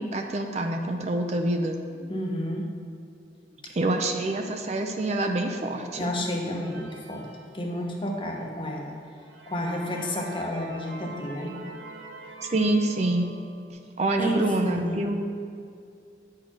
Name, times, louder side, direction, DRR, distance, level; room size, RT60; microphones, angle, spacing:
voice 1, 0.0-1.8 3.7-6.2 12.4-13.3 13.7-15.2, right 2 dB, 35° right, 4 dB, 0.5 m, -26 dB
voice 2, 2.1-2.7 6.0-7.3 7.5-9.0 9.5-11.6 14.2-15.0, left 1 dB, 25° left, 0 dB, 0.9 m, -31 dB
sound 1, 6.5-8.2 8.7-8.8 9.2-13.7, right 3 dB, 80° right, 1.0 m, -45 dB
9.4 x 4.5 x 6.0 m, 2.3 s
head